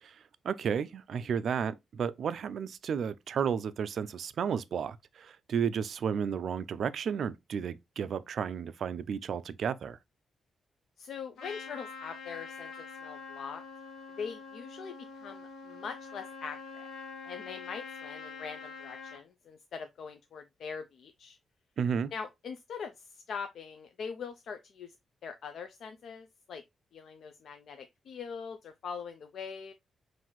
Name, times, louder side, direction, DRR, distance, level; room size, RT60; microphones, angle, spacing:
voice 1, 0.0-10.0 21.8-22.1, right 7 dB, 60° right, 0.3 m, -33 dB
voice 2, 11.0-13.6 14.2-16.9 17.2-21.4 22.1-24.9 25.2-26.6 26.9-29.7, left 6 dB, 60° left, 0.4 m, -42 dB
Trumpet, 11.4-19.2, left 4 dB, 90° left, 1.0 m, -45 dB
5.6 x 2.6 x 3.0 m
wide cardioid pair, 160°, 0 cm